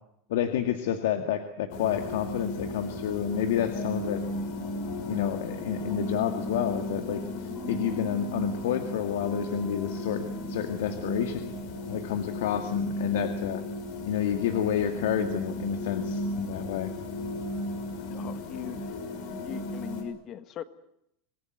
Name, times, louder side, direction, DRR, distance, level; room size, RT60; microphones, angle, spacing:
voice 1, 0.3-4.2 5.1-11.4 11.9-13.6 14.0-16.9, left 10 dB, 90° left, 8 dB, 2.0 m, -29 dB
sound 1, 1.7-20.0, left 1 dB, 55° left, 6.1 m, -35 dB
sound 2, 4.3-13.3, left 1 dB, 10° left, 4.7 m, -44 dB
voice 2, 18.1-18.9 19.4-20.6, left 10 dB, 30° left, 12 dB, 1.5 m, -39 dB
26.5 x 19.5 x 9.3 m, 0.77 s
supercardioid pair, 165°, 0 cm